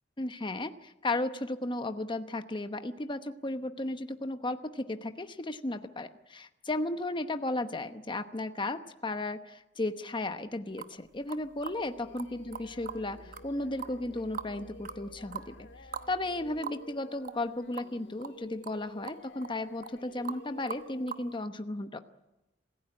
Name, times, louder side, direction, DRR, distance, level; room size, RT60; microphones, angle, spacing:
voice 1, 0.2-22.0, left 2 dB, 25° left, 9 dB, 1.0 m, -35 dB
sound 1, 10.5-16.6, equal, 15° right, 2.6 m, -56 dB
sound 2, 10.8-10.9 11.3-11.8 12.2-12.3 12.5-13.0 13.3-13.4 13.8-14.5 14.9-15.0 15.3-15.5 15.9-16.1 16.4-16.5 16.6-16.8 17.2-17.5 17.7-17.9 18.2-18.4 18.6-18.8 19.0-19.5 19.8-20.0 20.2-20.4 20.7-21.2, right 6 dB, 50° right, 1.1 m, -40 dB
Singing, 11.9-21.3, left 2 dB, 70° left, 1.8 m, -52 dB
26.5 x 16.0 x 9.6 m, 0.94 s
head